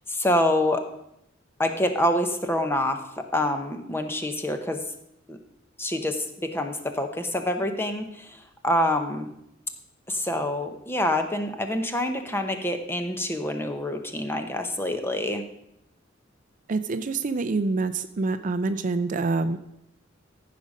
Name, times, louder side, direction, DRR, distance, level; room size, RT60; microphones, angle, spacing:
voice 1, 0.1-0.8 1.6-4.8 5.3-5.4 5.8-9.3 10.1-15.4, left 1 dB, 10° left, 6 dB, 0.9 m, -26 dB
voice 2, 16.7-19.6, right 3 dB, 40° right, 10 dB, 0.4 m, -26 dB
14.5 x 5.1 x 5.4 m, 0.79 s
head